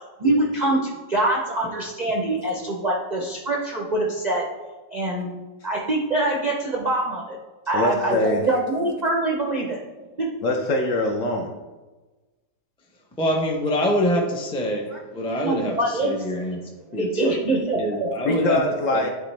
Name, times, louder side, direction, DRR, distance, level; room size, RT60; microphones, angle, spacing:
voice 1, 0.2-4.5 4.9-5.3 5.6-7.4 7.7-9.8 10.2-10.3 14.9-15.0 15.4-16.1 16.9-18.1, right 2 dB, 50° right, -2 dB, 0.5 m, -24 dB
voice 2, 7.7-8.5 10.4-11.5 18.2-19.1, left 2 dB, 65° left, 2 dB, 0.8 m, -23 dB
voice 3, 13.2-16.6 16.9-18.6 18.9-19.0, equal, 10° left, 0 dB, 0.3 m, -25 dB
10.5 x 3.5 x 3.3 m, 1.2 s
omnidirectional pair, 1.8 m